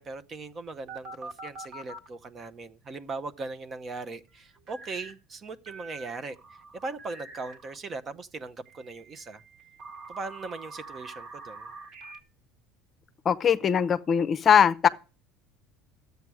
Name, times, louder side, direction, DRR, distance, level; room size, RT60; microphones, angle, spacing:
voice 1, 0.0-9.4 10.1-11.7, right 3 dB, 30° right, 0.8 m, -39 dB
sound 1, 0.9-2.1 4.7-5.1 5.7-7.8 8.7-12.2, right 3 dB, 50° right, 1.9 m, -45 dB
voice 2, 13.2-14.9, left 8 dB, 35° left, 0.7 m, -21 dB
12.5 x 8.1 x 4.8 m
supercardioid pair, 120°, 0 cm